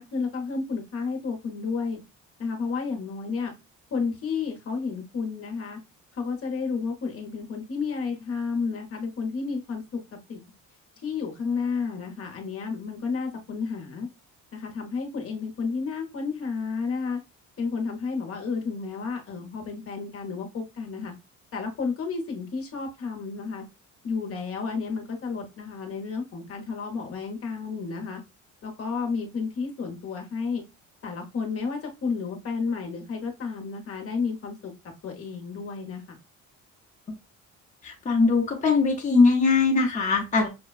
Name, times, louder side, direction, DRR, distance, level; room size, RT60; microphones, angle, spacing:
voice 1, 0.0-2.0 2.4-3.5 3.9-5.8 6.1-10.0 10.3-10.4 11.0-14.1 14.5-17.2 17.6-21.1 21.5-23.6 24.0-28.2 28.6-30.6 31.0-34.7 35.0-36.2, left 5 dB, 45° left, 3 dB, 0.9 m, -31 dB
voice 2, 37.8-40.5, left 4 dB, 25° left, 0 dB, 0.8 m, -21 dB
5.9 x 2.1 x 2.4 m, 0.25 s
cardioid pair, 125°, 31 cm